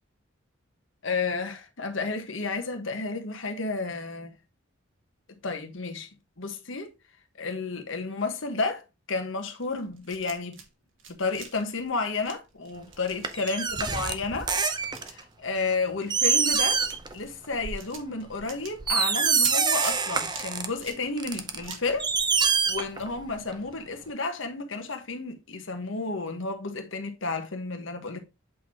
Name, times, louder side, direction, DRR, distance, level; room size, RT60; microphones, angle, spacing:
voice 1, 1.0-4.3 5.4-6.1 6.4-6.9 7.4-8.8 9.1-10.6 11.2-13.6 13.9-14.5 15.1-16.8 17.1-22.1 22.4-28.2, left 3 dB, 70° left, 1.3 m, -31 dB
sound 1, 9.6-10.7 10.9-23.0 23.4-23.5 23.8-23.9, right 6 dB, 65° right, 1.6 m, -45 dB
sound 2, 13.2-15.2 15.7-15.8 16.1-17.1 17.4-17.7 18.3-18.4 18.8-20.7 21.2-23.3 23.5-23.6, right 5 dB, 20° right, 0.6 m, -25 dB
8.1 x 4.5 x 2.8 m
head